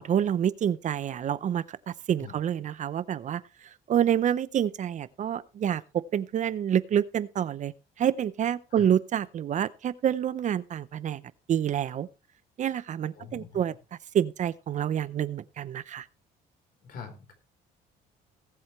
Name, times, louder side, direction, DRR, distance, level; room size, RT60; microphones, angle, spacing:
voice 1, 0.0-3.4 3.9-11.2 11.5-12.1 12.6-13.7 14.1-16.1, right 9 dB, 45° right, 0.7 m, -28 dB
voice 2, 13.1-13.6 16.8-17.3, left 7 dB, 60° left, 4.2 m, -43 dB
19.0 x 7.7 x 3.2 m
cardioid pair, 110°, 17 cm